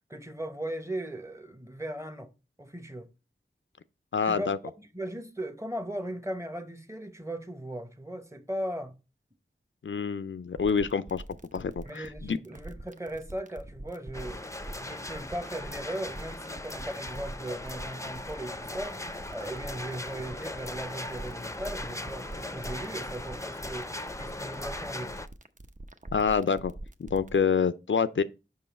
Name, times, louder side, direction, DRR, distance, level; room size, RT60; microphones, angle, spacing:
voice 1, 0.1-2.3 2.6-3.1 4.2-8.9 11.8-14.4 14.8-19.0 19.3-23.9 24.2-25.2, right 1 dB, 15° right, 0.9 m, -38 dB
voice 2, 4.1-4.6 9.8-11.2 11.5-12.4 26.1-26.7 27.0-28.2, left 6 dB, 70° left, 0.4 m, -27 dB
sound 1, 10.6-27.4, right 1 dB, 40° right, 0.7 m, -44 dB
sound 2, 14.1-25.3, left 2 dB, 15° left, 0.5 m, -39 dB
5.5 x 5.5 x 4.1 m
wide cardioid pair, 45°, 21 cm